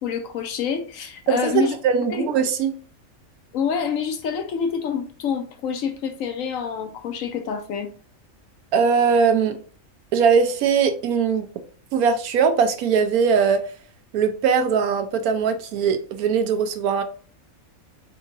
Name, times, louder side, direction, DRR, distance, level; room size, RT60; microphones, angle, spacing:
voice 1, 0.0-1.7 2.1-2.3 3.5-7.9, left 6 dB, 70° left, 1.0 m, -27 dB
voice 2, 1.3-2.8 8.7-9.6 10.1-11.5 11.9-13.6 14.1-17.0, right 6 dB, 90° right, 1.1 m, -20 dB
3.9 x 3.6 x 2.5 m
omnidirectional pair, 1.5 m